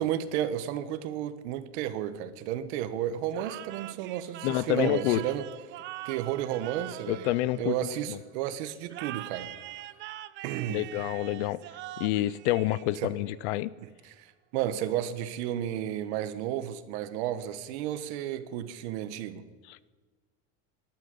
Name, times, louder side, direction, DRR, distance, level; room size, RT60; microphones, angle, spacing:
voice 1, 0.0-5.5 6.0-9.5 10.4-10.9 13.0-13.1 13.8-19.4, right 11 dB, 80° right, 1.3 m, -32 dB
sound 1, 3.3-8.1 8.9-13.3, right 15 dB, 35° right, 0.5 m, -43 dB
voice 2, 4.4-5.2 7.1-7.7 8.1-8.2 10.7-11.6 12.0-13.7 19.7-19.9, left 16 dB, 90° left, 0.7 m, -28 dB
19.0 x 12.0 x 5.4 m
cardioid pair, 160°, 33 cm